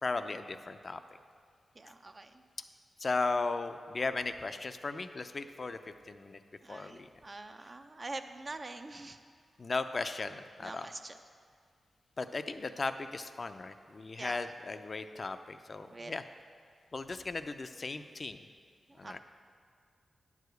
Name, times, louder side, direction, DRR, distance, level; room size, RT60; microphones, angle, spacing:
voice 1, 0.0-1.0 3.0-5.8 6.1-6.4 6.7-7.1 9.6-10.9 12.2-16.2 16.9-18.4 19.0-19.2, left 3 dB, 40° left, 9 dB, 0.5 m, -36 dB
voice 2, 1.8-2.4 6.6-9.2 10.6-11.1 14.2-14.4 15.9-16.1 18.9-19.2, right 2 dB, 35° right, 7 dB, 0.5 m, -44 dB
9.8 x 4.9 x 8.0 m, 2.1 s
wide cardioid pair, 90°, 0 cm